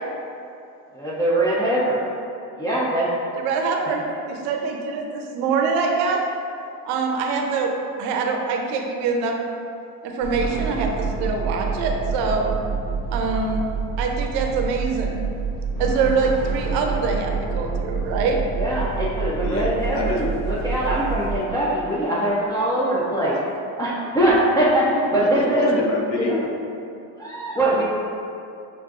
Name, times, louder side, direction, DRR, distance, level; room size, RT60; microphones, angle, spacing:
voice 1, 0.9-2.0 2.6-3.3 18.6-23.4 23.8-25.8 26.3-26.4 27.1-27.8, right 1 dB, 10° left, -8 dB, 0.3 m, -22 dB
voice 2, 3.4-6.2 6.8-7.7 8.0-9.4 10.0-12.6 13.1-13.6 14.0-15.2 15.8-18.4, right 4 dB, 60° right, 2 dB, 0.6 m, -24 dB
sound 1, 10.2-21.4, right 4 dB, 85° left, 0.9 m, -27 dB
voice 3, 19.4-20.2 25.2-26.5 27.6-27.8, left 3 dB, 50° left, 0 dB, 0.7 m, -28 dB
5.8 x 2.5 x 2.4 m, 2.6 s
supercardioid pair, 105°, 44 cm